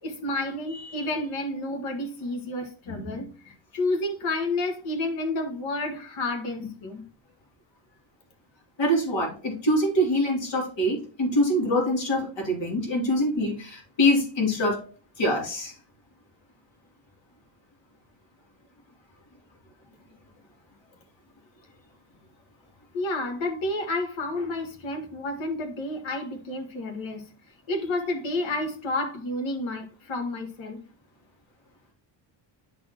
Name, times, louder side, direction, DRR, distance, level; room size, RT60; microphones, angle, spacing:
voice 1, 0.0-7.0 22.9-27.3 27.7-30.8, left 2 dB, 85° left, 1.7 m, -30 dB
voice 2, 2.9-3.2 8.8-14.9 15.2-15.7, equal, 70° left, 3.1 m, -25 dB
10.5 x 4.2 x 2.9 m
cardioid pair, 130°, 46 cm